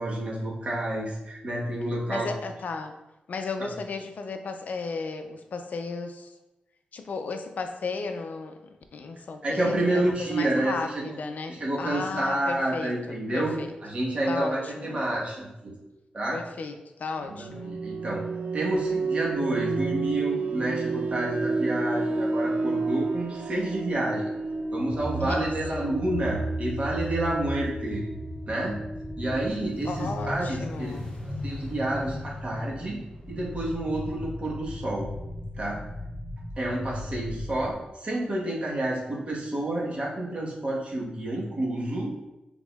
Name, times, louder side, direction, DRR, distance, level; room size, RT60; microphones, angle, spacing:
voice 1, 0.0-2.3 9.4-11.2 11.5-13.5 13.8-15.8 16.1-16.4 17.3-18.2 18.5-24.3 24.7-28.0 28.5-28.8 29.2-30.9 31.4-33.0 33.3-35.1 35.6-35.8 36.6-42.1, right 1 dB, 45° right, -4 dB, 1.2 m, -29 dB
voice 2, 2.1-2.9 3.3-6.3 6.9-13.7 14.3-15.0 16.3-17.8 25.2-25.9 29.8-31.1, left 4 dB, 65° left, 6 dB, 0.4 m, -35 dB
sound 1, 17.2-29.7, right 3 dB, 65° right, 0.4 m, -31 dB
sound 2, 24.9-37.7, equal, 35° left, 1.0 m, -36 dB
6.1 x 3.6 x 2.3 m, 0.97 s
wide cardioid pair, 135°, 3 cm